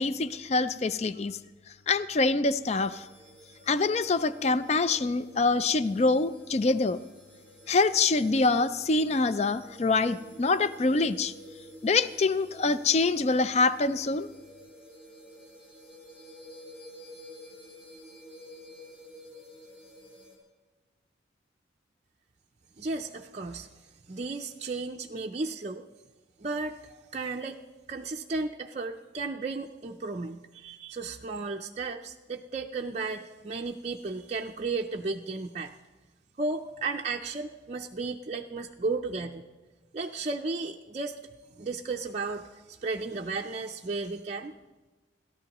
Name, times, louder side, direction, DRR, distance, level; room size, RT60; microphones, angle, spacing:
voice 1, 0.0-1.4 1.9-3.0 3.7-7.0 7.7-11.3 11.8-14.3, left 3 dB, 35° left, 13 dB, 0.4 m, -25 dB
sound 1, 2.5-20.4, equal, 10° left, 4.7 m, -50 dB
voice 2, 22.8-23.7 24.1-25.8 26.4-27.6 27.9-35.7 36.4-39.4 39.9-41.1 41.6-44.5, right 3 dB, 35° right, 1 dB, 0.5 m, -34 dB
28.0 x 13.5 x 3.0 m, 1.2 s
head